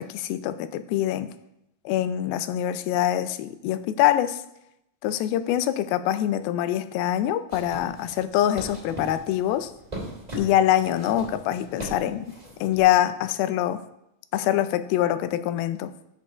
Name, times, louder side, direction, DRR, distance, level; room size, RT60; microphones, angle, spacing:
voice 1, 0.0-1.3 1.9-4.4 5.0-9.7 10.4-12.3 12.6-13.8 14.3-15.9, left 12 dB, 85° left, 12 dB, 2.4 m, -24 dB
sound 1, 7.5-12.8, equal, 20° right, 1.1 m, -40 dB
14.5 x 6.8 x 2.5 m, 0.85 s
omnidirectional pair, 4.2 m